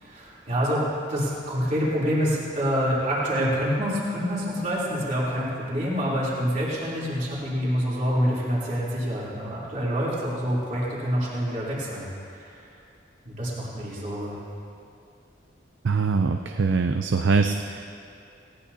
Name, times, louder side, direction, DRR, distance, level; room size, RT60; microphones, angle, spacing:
voice 1, 0.0-12.1 12.4-12.5 13.2-14.4, equal, 40° right, -7 dB, 3.2 m, -26 dB
voice 2, 15.8-17.8, right 4 dB, 85° right, 6 dB, 0.5 m, -23 dB
18.5 x 17.5 x 2.8 m, 2.5 s
head